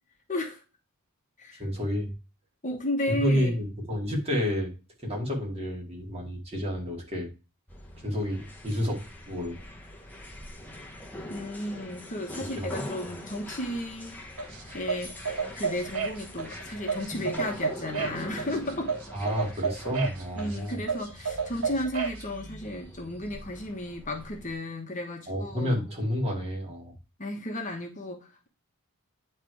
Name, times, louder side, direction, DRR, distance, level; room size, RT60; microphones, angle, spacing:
voice 1, 0.3-0.6 1.4-1.6 2.6-3.6 11.3-14.2 14.7-18.9 20.4-25.9 27.2-28.5, left 1 dB, 35° left, 2 dB, 1.2 m, -34 dB
voice 2, 1.6-2.1 3.1-4.7 5.0-7.3 8.0-9.6 12.5-12.8 19.1-20.8 25.3-26.9, equal, 30° right, -1 dB, 2.3 m, -30 dB
sound 1, 7.7-24.5, left 1 dB, 10° left, 1.0 m, -43 dB
sound 2, 14.4-22.2, right 5 dB, 65° right, 1.5 m, -32 dB
9.5 x 3.3 x 4.6 m, 0.30 s
head